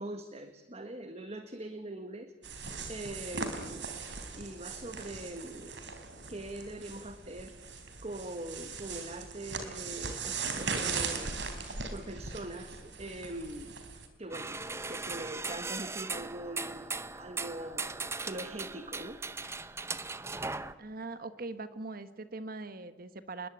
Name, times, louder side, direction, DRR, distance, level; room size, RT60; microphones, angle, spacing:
voice 1, 0.0-2.3 2.9-3.9 4.3-5.8 6.3-7.5 8.0-11.3 11.9-13.7 14.2-14.5 14.9-16.9 17.2-19.2, right 1 dB, 35° right, 8 dB, 1.6 m, -42 dB
sound 1, 2.4-14.1, right 4 dB, 65° right, 4.0 m, -39 dB
sound 2, 14.3-20.7, right 3 dB, 15° right, 0.8 m, -38 dB
voice 2, 20.8-23.5, right 3 dB, 50° right, 12 dB, 1.2 m, -41 dB
28.5 x 21.5 x 8.8 m, 1.1 s
head